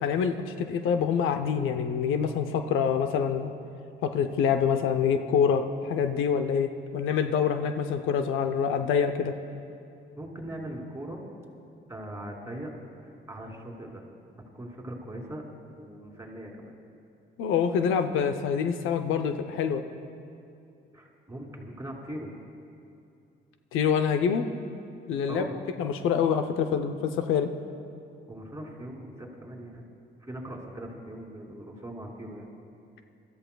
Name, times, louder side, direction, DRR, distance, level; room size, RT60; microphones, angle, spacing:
voice 1, 0.0-3.5 4.0-9.4 17.4-19.8 23.7-24.5 25.1-27.5, left 7 dB, 85° left, 8 dB, 0.7 m, -26 dB
voice 2, 10.1-11.2 11.9-12.7 13.0-14.1 14.4-16.7 20.9-22.3 25.3-25.6 28.3-29.8 30.2-32.5, right 1 dB, 15° right, -1 dB, 2.8 m, -40 dB
24.5 x 14.0 x 2.3 m, 2.5 s
cardioid pair, 90°, 20 cm